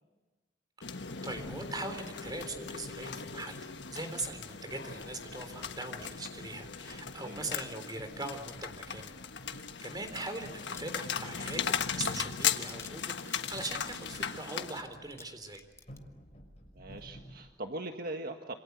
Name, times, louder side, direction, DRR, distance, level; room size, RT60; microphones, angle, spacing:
sound 1, 0.8-14.8, left 7 dB, 75° left, 1.3 m, -38 dB
voice 1, 0.8-3.6 3.9-9.1 9.5-15.6, right 2 dB, 25° right, 7 dB, 3.7 m, -41 dB
sound 2, 1.3-14.3 14.8-17.4, equal, 40° left, 6.3 m, -54 dB
voice 2, 7.2-7.5 16.7-18.6, right 2 dB, 55° right, 4 dB, 1.6 m, -40 dB
sound 3, 10.1-10.8 11.1-11.7 12.0-12.1 12.3-15.3 15.5-16.0, left 4 dB, 15° left, 1.1 m, -52 dB
27.0 x 26.5 x 8.2 m, 1.3 s
head